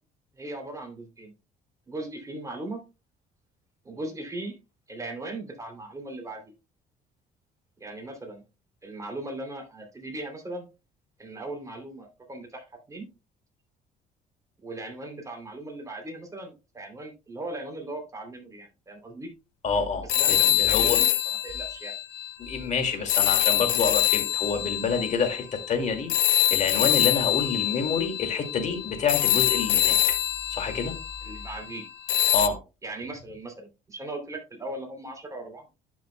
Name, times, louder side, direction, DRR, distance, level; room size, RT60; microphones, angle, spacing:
voice 1, 0.3-1.3 1.9-2.8 3.8-4.5 4.9-6.5 7.8-8.4 8.8-10.7 11.2-13.1 14.6-19.3 20.0-21.1 21.4-21.9 31.2-31.9 32.8-35.6, right 2 dB, 20° right, 2 dB, 2.8 m, -38 dB
voice 2, 19.6-20.1 20.4-21.0 22.4-30.0 30.5-31.0 32.3-32.6, left 5 dB, 45° left, 6 dB, 2.2 m, -28 dB
sound 1, 20.1-22.6 23.1-31.6 32.1-32.5, left 12 dB, 75° left, 0.9 m, -24 dB
11.5 x 6.1 x 2.2 m, 0.28 s
cardioid pair, 110°, 17 cm